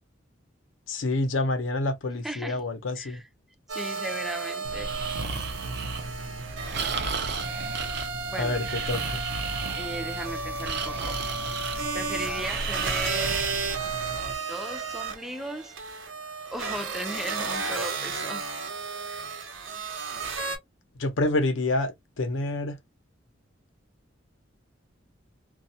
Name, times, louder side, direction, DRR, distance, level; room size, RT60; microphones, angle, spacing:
voice 1, 0.9-3.2 8.4-9.2 21.0-22.8, left 2 dB, 75° left, 0.7 m, -28 dB
voice 2, 2.2-2.6 3.0-3.2 3.7-5.0 8.3-8.6 9.7-11.2 11.9-13.5 14.5-15.7 16.5-18.5, right 1 dB, ahead, 0.4 m, -36 dB
sound 1, 3.7-20.6, right 4 dB, 85° right, 0.8 m, -33 dB
Breathing, 4.6-14.3, right 4 dB, 60° right, 0.5 m, -33 dB
2.3 x 2.1 x 2.6 m
head